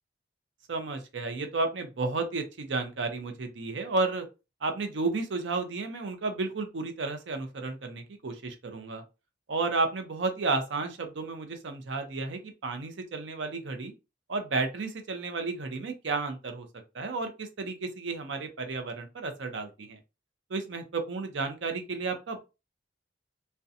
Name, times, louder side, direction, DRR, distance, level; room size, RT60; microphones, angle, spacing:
voice 1, 0.7-4.3 4.6-9.0 9.5-13.9 14.3-16.7 16.9-20.0 20.5-22.4, right 3 dB, 80° right, 7 dB, 0.6 m, -32 dB
2.6 x 2.2 x 2.4 m, 0.28 s
head